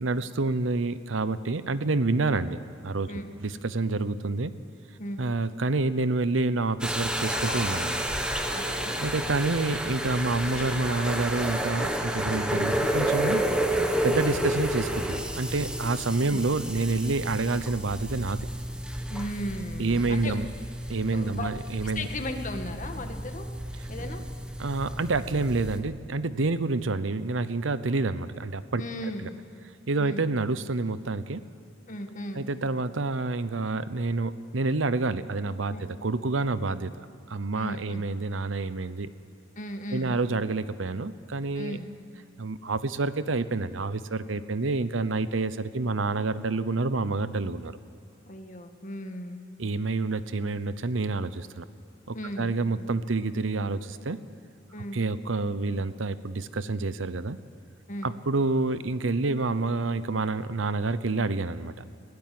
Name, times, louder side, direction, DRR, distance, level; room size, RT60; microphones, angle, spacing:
voice 1, 0.0-3.1 3.4-4.5 5.2-8.0 9.0-13.5 14.0-18.5 19.8-20.5 20.9-22.1 24.6-28.8 29.2-29.3 29.9-31.4 32.3-35.8 36.0-36.9 37.3-39.1 39.9-41.8 42.4-47.8 49.6-51.6 52.1-54.2 54.9-57.4 58.0-61.7, right 3 dB, 90° right, 14 dB, 0.8 m, -28 dB
Human voice, 6.8-6.9 7.1-9.1 10.0-11.7, left 2 dB, 75° left, 2.3 m, -41 dB
sound 1, 6.8-25.8, right 1 dB, 5° right, 1.4 m, -31 dB
voice 2, 8.5-9.0 16.2-16.4 19.1-20.4 21.1-23.5 23.9-24.2 28.8-29.4 30.0-30.2 31.9-32.4 35.7-35.9 37.5-38.0 39.6-40.2 41.6-41.8 48.3-49.4 52.1-52.5 54.7-55.0 57.9-58.1, left 1 dB, 40° left, 5 dB, 1.8 m, -36 dB
21.0 x 16.5 x 7.7 m, 2.6 s
head